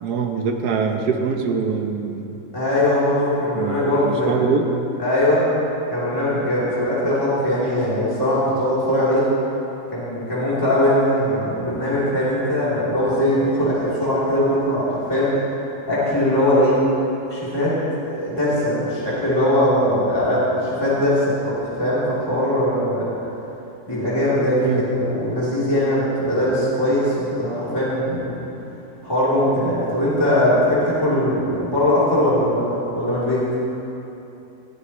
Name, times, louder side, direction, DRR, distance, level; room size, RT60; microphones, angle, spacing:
voice 1, 0.0-2.3 3.5-4.7 24.6-24.8, right 6 dB, 75° right, 3 dB, 1.5 m, -23 dB
voice 2, 2.5-4.4 5.0-5.5 5.9-9.3 9.9-15.4 15.9-16.8 17.3-17.8 18.1-23.2 23.9-28.4 29.0-33.5, left 1 dB, 15° left, -10 dB, 3.5 m, -20 dB
19.5 x 14.5 x 3.2 m, 3.0 s
omnidirectional pair, 1.7 m